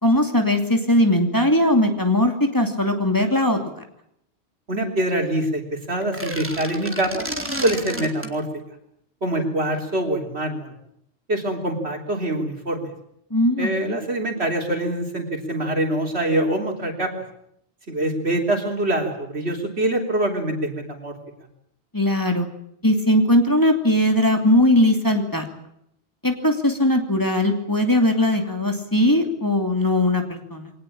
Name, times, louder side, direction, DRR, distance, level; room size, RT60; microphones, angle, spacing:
voice 1, 0.0-3.6 13.3-14.0 21.9-22.5 22.8-25.5 26.2-30.7, left 1 dB, 20° left, 4 dB, 2.7 m, -19 dB
voice 2, 4.7-7.3 7.6-8.5 9.2-10.7 11.3-12.9 13.6-17.1 17.9-21.1, right 1 dB, 70° right, 3 dB, 4.0 m, -24 dB
sound 1, 6.0-8.3, equal, 10° right, 3.3 m, -31 dB
22.5 x 19.0 x 8.7 m, 0.74 s
omnidirectional pair, 1.1 m